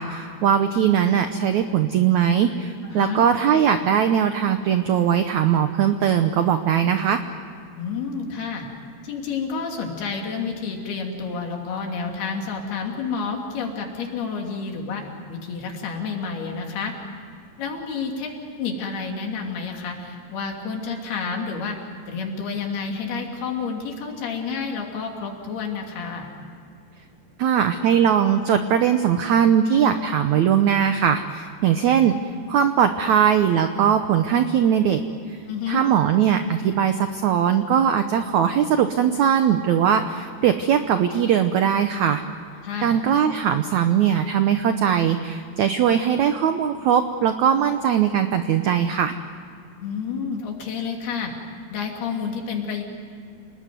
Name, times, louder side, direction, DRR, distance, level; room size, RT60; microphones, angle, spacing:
voice 1, 0.0-7.2 27.4-32.1 32.5-35.0 35.3-35.4 35.7-42.2 42.8-49.1, right 8 dB, 80° right, 8 dB, 1.7 m, -20 dB
voice 2, 2.8-3.2 7.8-8.7 9.0-16.9 17.6-21.8 22.1-26.3 35.5-35.8 42.6-42.9 49.8-51.3 51.7-52.8, left 5 dB, 70° left, 1 dB, 4.8 m, -30 dB
28.0 x 20.0 x 9.4 m, 2.4 s
omnidirectional pair, 4.6 m